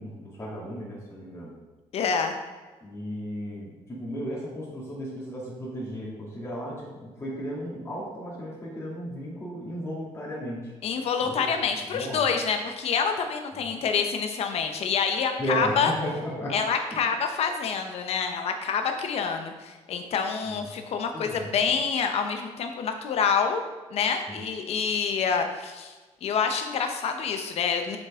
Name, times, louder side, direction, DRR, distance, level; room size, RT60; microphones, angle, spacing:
voice 1, 0.0-1.5 2.8-10.7 11.2-11.5 11.9-12.2 13.6-13.7 15.4-16.5 16.9-17.0 20.5-20.8 21.1-21.6 24.3-24.4, equal, 25° left, -6 dB, 2.5 m, -35 dB
voice 2, 1.9-2.3 10.8-15.9 16.5-23.6 23.9-25.9 26.2-28.0, left 6 dB, 65° left, 5 dB, 0.9 m, -27 dB
7.6 x 6.5 x 3.7 m, 1.3 s
cardioid pair, 125°, 11 cm